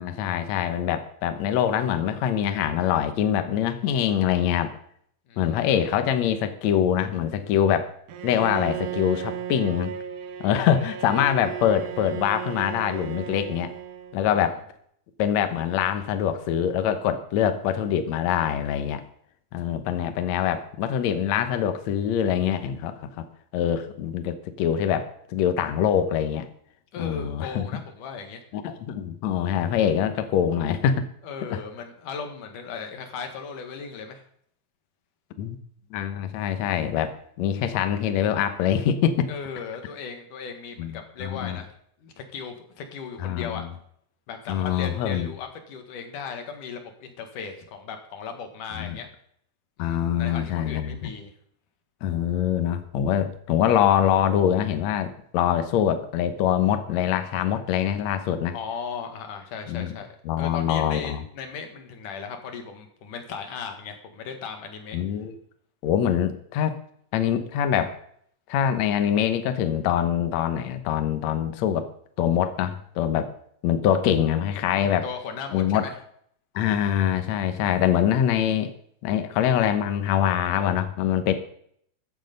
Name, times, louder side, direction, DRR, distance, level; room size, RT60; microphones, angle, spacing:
voice 1, 0.0-4.7 5.4-7.9 8.2-9.9 10.4-13.7 14.1-14.6 15.2-19.0 19.5-23.0 23.5-26.5 27.0-27.7 28.5-31.1 31.5-31.6 35.4-35.6 35.9-39.3 40.8-41.6 43.2-43.7 44.5-45.3 48.7-49.0 49.8-51.1 52.0-58.5 59.7-60.0 60.2-61.2 64.9-65.3 65.8-66.8 67.1-68.0 68.5-71.9 72.2-73.3 73.6-75.0 75.5-75.9 76.5-78.7 79.0-81.3, left 9 dB, 85° left, 9 dB, 1.5 m, -24 dB
voice 2, 5.3-5.6 14.2-14.4 26.9-28.4 31.2-34.2 39.3-41.7 42.0-43.6 44.3-49.1 49.8-51.3 58.5-65.0 74.8-75.9 81.3-81.4, left 5 dB, 60° left, 5 dB, 3.0 m, -37 dB
Bowed string instrument, 8.1-14.4, right 9 dB, 70° right, 2.3 m, -35 dB
14.5 x 9.9 x 5.3 m, 0.65 s
omnidirectional pair, 4.7 m